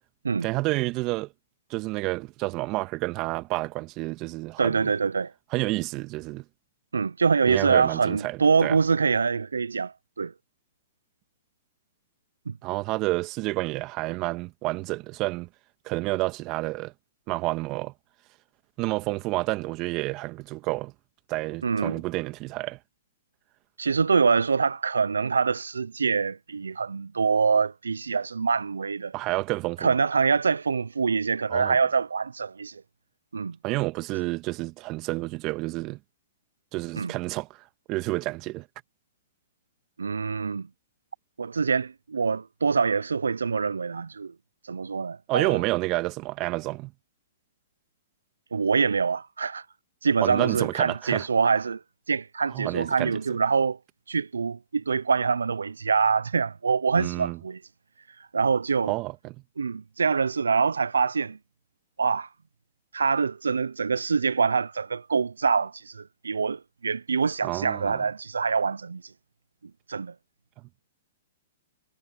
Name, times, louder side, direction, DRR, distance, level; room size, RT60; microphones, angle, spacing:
voice 1, 0.4-1.3 1.7-4.8 5.5-6.4 7.5-8.8 12.6-15.5 15.9-16.9 17.3-17.9 18.8-20.9 21.3-22.8 29.1-29.9 31.5-31.8 33.6-36.0 36.7-37.5 37.9-38.7 45.3-46.9 50.2-51.3 52.5-53.2 57.0-57.4 58.9-59.4 67.4-68.0, right 21 dB, 35° right, 2.0 m, -29 dB
voice 2, 4.6-5.3 6.9-10.3 12.5-12.6 21.6-22.0 23.8-29.1 29.8-32.8 33.3-33.6 37.0-37.1 40.0-40.7 41.4-44.3 44.6-45.6 48.5-49.6 50.0-51.8 52.1-53.8 54.1-57.6 58.3-58.9 59.6-61.4 62.0-62.3 62.9-69.0 69.9-70.1, right 5 dB, 80° right, 0.8 m, -25 dB
hypercardioid pair, 115°, 0 cm